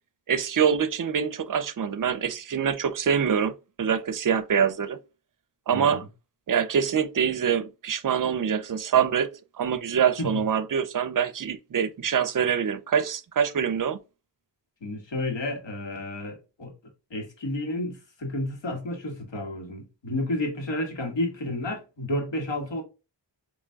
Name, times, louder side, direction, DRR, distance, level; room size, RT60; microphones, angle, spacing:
voice 1, 0.3-5.0 5.7-6.0 6.5-9.3 9.6-14.0, right 7 dB, 50° right, 0.5 m, -25 dB
voice 2, 5.7-6.1 10.2-10.4 14.8-16.7 17.1-22.8, left 1 dB, 80° left, 1.9 m, -31 dB
6.4 x 3.1 x 2.3 m
wide cardioid pair, 100°, 43 cm